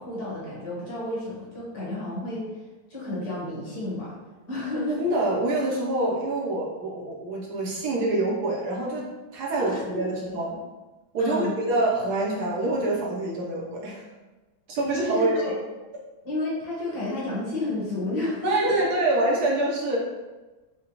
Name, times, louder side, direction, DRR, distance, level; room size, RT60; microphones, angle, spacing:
voice 1, 0.0-2.5 2.9-4.2 4.5-5.0 9.5-10.0 11.2-11.5 15.0-15.6 16.2-18.9, left 2 dB, 55° left, -7 dB, 1.6 m, -31 dB
voice 2, 4.9-10.6 11.1-14.0 14.7-15.3 18.4-20.0, right 2 dB, 65° right, -3 dB, 1.1 m, -26 dB
4.9 x 2.2 x 2.9 m, 1.2 s
omnidirectional pair, 2.1 m